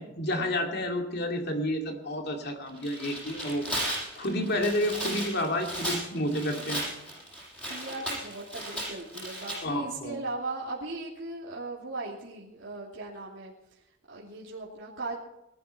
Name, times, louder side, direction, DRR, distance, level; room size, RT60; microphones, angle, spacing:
voice 1, 0.0-3.7 4.2-6.8 9.6-10.2, left 1 dB, 55° left, 3 dB, 2.4 m, -30 dB
Tearing, 2.7-9.6, equal, 5° left, 6.1 m, -35 dB
voice 2, 7.7-13.8 14.1-15.2, right 2 dB, 75° right, -5 dB, 2.8 m, -38 dB
19.5 x 13.0 x 4.4 m, 0.92 s
head